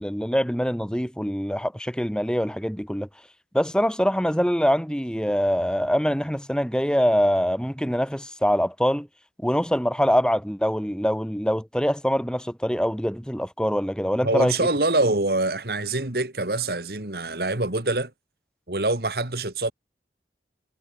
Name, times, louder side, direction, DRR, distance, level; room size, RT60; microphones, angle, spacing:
voice 1, 0.0-3.1 3.5-9.1 9.4-14.5, equal, 5° left, 5.9 m, -24 dB
voice 2, 14.2-18.1 18.7-19.7, right 2 dB, 55° right, 2.2 m, -25 dB
head